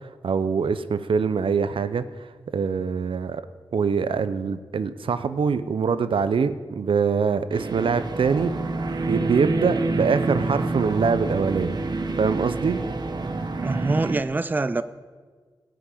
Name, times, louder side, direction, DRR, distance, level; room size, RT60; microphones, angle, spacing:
voice 1, 0.0-3.4 3.7-8.5 9.1-12.8, right 5 dB, 75° right, 12 dB, 0.6 m, -24 dB
sound 1, 7.5-14.2, right 3 dB, 50° right, 1.1 m, -27 dB
voice 2, 13.6-14.8, right 3 dB, 20° right, 13 dB, 0.4 m, -24 dB
17.5 x 5.9 x 8.4 m, 1.5 s
wide cardioid pair, 90°, 9 cm